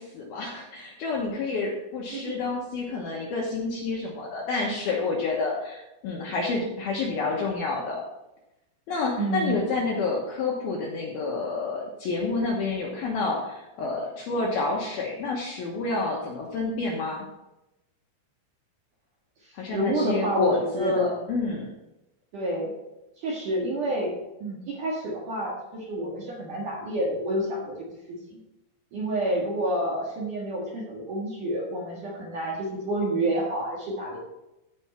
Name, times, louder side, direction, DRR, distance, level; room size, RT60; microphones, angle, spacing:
voice 1, 0.0-8.0 8.9-17.3 19.5-21.7, left 3 dB, 70° left, -3 dB, 2.4 m, -29 dB
voice 2, 9.2-9.5 19.7-21.2 22.3-22.7 23.2-24.1 24.4-27.8 28.9-34.2, right 1 dB, 55° right, -4 dB, 2.4 m, -29 dB
15.0 x 5.4 x 4.4 m, 0.94 s
omnidirectional pair, 5.9 m